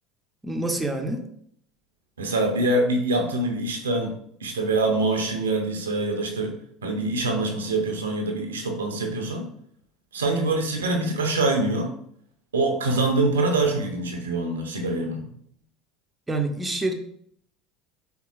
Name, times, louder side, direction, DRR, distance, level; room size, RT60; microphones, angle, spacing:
voice 1, 0.4-1.3 16.3-16.9, right 2 dB, 15° right, 3 dB, 0.7 m, -27 dB
voice 2, 2.2-4.1 4.4-9.4 10.1-11.9 12.5-15.3, right 2 dB, 80° right, 3 dB, 0.6 m, -24 dB
4.4 x 3.6 x 2.4 m, 0.66 s
figure-of-eight pair, 70°, 0 cm